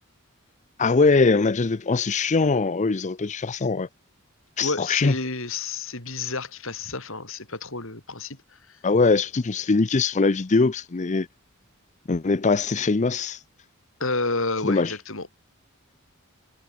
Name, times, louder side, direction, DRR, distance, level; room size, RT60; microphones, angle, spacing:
voice 1, 0.8-3.9 4.6-5.1 8.8-11.3 12.1-13.4 14.6-14.9, left 4 dB, 35° left, 0.5 m, -22 dB
voice 2, 4.6-8.4 14.0-15.3, left 3 dB, 60° left, 6.8 m, -30 dB
head